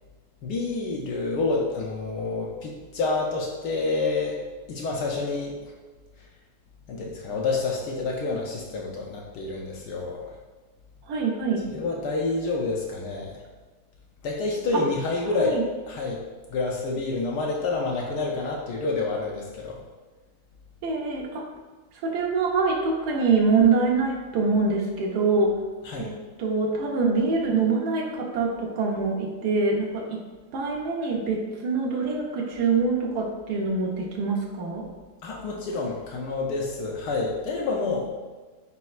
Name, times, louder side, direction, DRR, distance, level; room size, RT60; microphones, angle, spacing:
voice 1, 0.4-4.4 4.7-5.7 6.2-6.3 6.9-10.3 11.7-13.4 14.2-15.6 15.9-16.2 16.5-19.8 25.8-26.1 35.2-38.1, left 3 dB, 75° left, -2 dB, 1.0 m, -28 dB
voice 2, 11.1-11.7 14.7-14.8 15.4-15.6 20.8-21.5 22.0-25.6 26.0-30.2 30.5-34.9, right 4 dB, 70° right, -1 dB, 1.0 m, -24 dB
4.3 x 4.0 x 2.3 m, 1.3 s
omnidirectional pair, 2.3 m